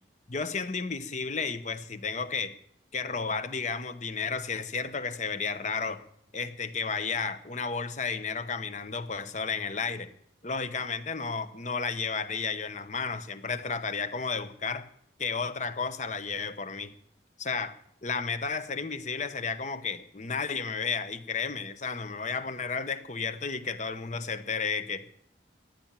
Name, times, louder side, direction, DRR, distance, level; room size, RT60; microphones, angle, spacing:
voice 1, 0.3-2.5 2.9-6.0 6.3-10.1 10.4-14.9 15.2-16.9 17.4-17.8 18.0-25.3, left 5 dB, 40° left, 12 dB, 1.0 m, -32 dB
16.0 x 10.5 x 7.6 m, 0.68 s
head